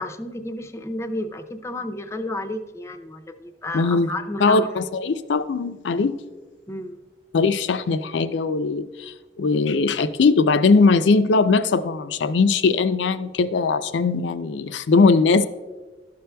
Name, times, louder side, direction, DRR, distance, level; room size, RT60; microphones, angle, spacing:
voice 1, 0.0-4.7 6.7-7.0, left 1 dB, 15° left, 7 dB, 0.4 m, -31 dB
voice 2, 3.7-4.1 4.4-6.1 7.3-15.4, left 4 dB, 85° left, 12 dB, 0.4 m, -20 dB
12.0 x 6.8 x 2.2 m, 1.2 s
head